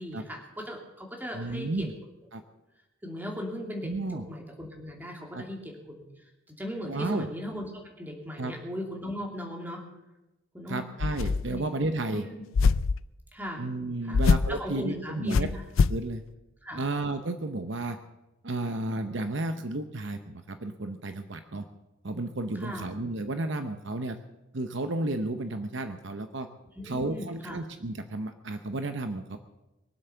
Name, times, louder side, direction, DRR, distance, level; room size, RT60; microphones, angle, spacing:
voice 1, 0.0-1.9 3.0-6.0 6.5-7.7 8.0-9.8 10.5-10.9 11.5-11.6 12.1-12.4 13.3-13.7 14.0-14.2 14.5-15.6 16.6-16.9 22.5-22.9 26.7-27.6, equal, 10° right, 0 dB, 2.7 m, -38 dB
voice 2, 1.3-1.9 2.3-2.4 3.8-4.2 5.3-5.4 6.8-7.3 8.4-8.5 10.7-12.2 13.6-15.5 15.9-16.2 16.7-18.0 18.4-21.6 22.0-24.2 24.5-26.5 26.8-29.4, right 2 dB, 55° right, 8 dB, 0.8 m, -32 dB
sound 1, 11.0-11.6 12.5-13.0 14.1-14.6 15.3-16.0, left 4 dB, 70° left, 0.4 m, -24 dB
22.5 x 7.9 x 6.9 m, 1.0 s
head